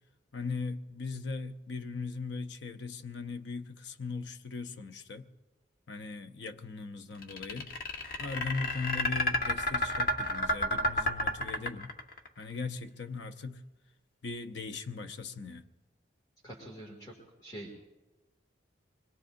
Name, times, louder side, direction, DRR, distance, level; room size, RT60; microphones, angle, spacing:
voice 1, 0.3-5.3 5.9-7.7 8.2-11.9 12.4-13.6 14.2-15.6, left 4 dB, 65° left, 0.7 m, -39 dB
sound 1, 7.2-12.3, left 1 dB, 45° left, 1.2 m, -30 dB
voice 2, 16.4-17.1 17.4-17.8, right 1 dB, 20° left, 2.2 m, -45 dB
24.0 x 21.0 x 2.6 m
head